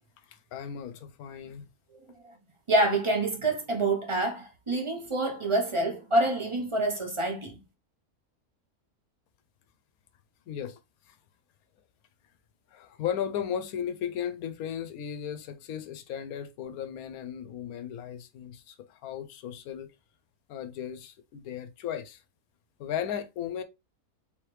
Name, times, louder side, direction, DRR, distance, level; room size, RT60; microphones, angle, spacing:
voice 1, 0.5-1.6 10.5-10.8 11.1-11.2 12.7-19.9 20.5-22.2 22.8-23.6, left 9 dB, 75° left, 1.0 m, -36 dB
voice 2, 2.7-7.5, right 2 dB, 25° right, 0.7 m, -27 dB
3.5 x 3.2 x 3.1 m
omnidirectional pair, 1.6 m